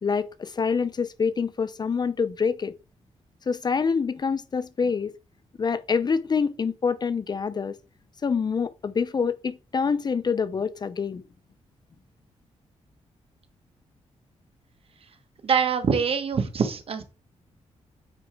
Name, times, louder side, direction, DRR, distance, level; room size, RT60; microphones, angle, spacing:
voice 1, 0.0-2.8 3.5-5.1 5.6-7.8 8.2-11.2, left 5 dB, 35° left, 0.5 m, -26 dB
voice 2, 15.4-17.0, right 6 dB, 55° right, 1.2 m, -24 dB
8.9 x 4.4 x 3.5 m
cardioid pair, 100°, 12 cm